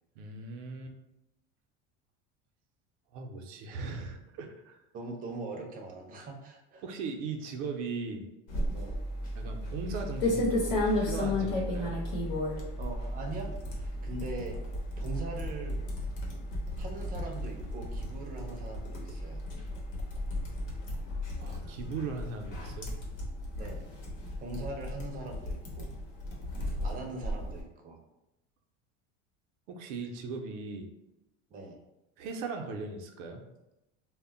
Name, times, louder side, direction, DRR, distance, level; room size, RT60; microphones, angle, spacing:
voice 1, 0.2-0.9 3.1-4.8 6.8-8.2 9.4-11.9 21.4-22.9 26.8-27.0 29.7-30.9 32.2-33.4, right 4 dB, 85° right, 3 dB, 0.5 m, -38 dB
voice 2, 4.9-6.8 8.7-9.0 12.8-13.5 13.8-14.6 15.0-15.8 16.8-19.5 23.6-23.9 24.4-25.9 26.8-28.0 31.5-31.8, right 3 dB, 25° right, 2 dB, 0.4 m, -41 dB
sound 1, 8.5-27.6, left 1 dB, 85° left, 0.9 m, -34 dB
2.1 x 2.0 x 3.7 m, 0.91 s
supercardioid pair, 125°, 35 cm